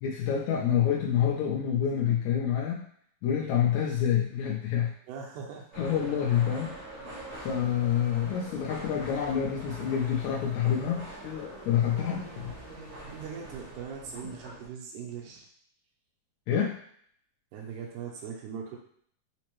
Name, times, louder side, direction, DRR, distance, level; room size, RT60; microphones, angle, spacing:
voice 1, 0.0-2.9 3.2-4.9 5.8-6.8 7.4-12.6 16.5-16.8, left 9 dB, 80° left, -4 dB, 1.6 m, -27 dB
voice 2, 5.1-5.7 13.1-15.5 17.5-18.8, right 6 dB, 80° right, 0 dB, 2.0 m, -40 dB
sound 1, 5.7-14.7, right 1 dB, 65° right, 1.0 m, -44 dB
5.0 x 2.0 x 3.0 m, 0.63 s
omnidirectional pair, 3.5 m